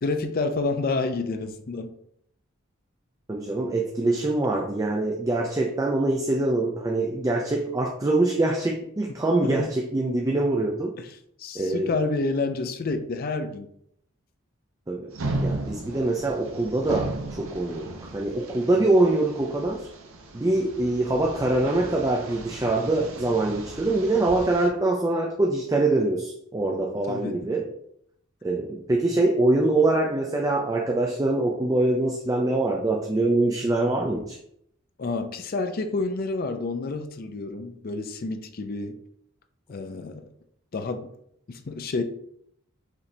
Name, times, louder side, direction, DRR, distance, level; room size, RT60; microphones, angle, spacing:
voice 1, 0.0-1.9 9.4-9.7 11.0-13.7 27.1-27.5 35.0-39.0 39.7-40.3 40.7-41.1 41.5-42.0, left 3 dB, 45° left, 0.4 m, -29 dB
voice 2, 3.3-10.9 11.5-11.9 14.9-15.1 15.4-19.9 20.3-27.7 28.4-34.4, right 2 dB, 15° right, 0.4 m, -24 dB
sound 1, 15.1-24.7, right 2 dB, 70° right, 0.7 m, -36 dB
4.9 x 2.8 x 3.2 m
head